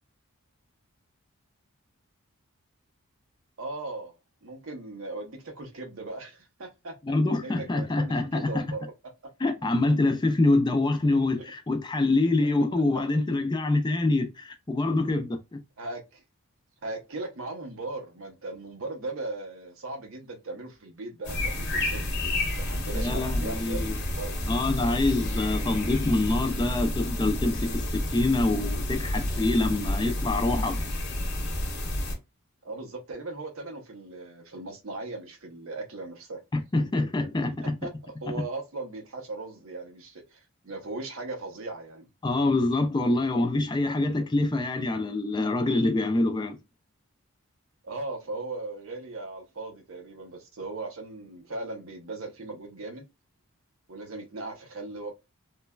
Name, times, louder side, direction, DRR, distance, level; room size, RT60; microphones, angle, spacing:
voice 1, 3.6-4.1 4.4-6.9 7.3-8.9 15.8-16.2 16.8-24.4 32.6-36.4 37.6-37.9 38.2-42.1 47.8-53.0 53.9-55.1, right 2 dB, 65° right, 0.7 m, -38 dB
voice 2, 7.1-8.7 9.4-15.6 22.9-24.0 24.5-30.9 36.5-37.8 38.3-38.4 42.2-46.6, left 2 dB, 20° left, 0.3 m, -25 dB
sound 1, 21.2-32.1, left 1 dB, 50° left, 0.9 m, -30 dB
3.1 x 2.1 x 2.2 m
head